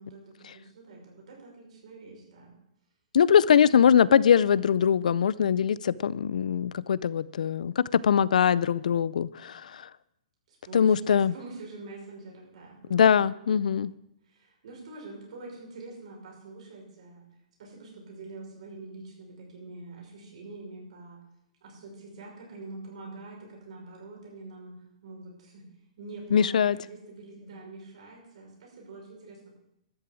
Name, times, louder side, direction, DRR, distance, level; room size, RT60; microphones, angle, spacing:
voice 1, 0.0-2.5 10.5-13.2 13.7-13.8 14.2-17.3 17.6-21.2 21.6-25.7 26.0-29.5, right 3 dB, 55° right, 5.9 m, -45 dB
voice 2, 3.1-9.8 10.7-11.3 12.9-13.9 26.3-26.8, left 8 dB, 70° left, 0.5 m, -22 dB
12.5 x 7.0 x 8.3 m
hypercardioid pair, 170°, 4 cm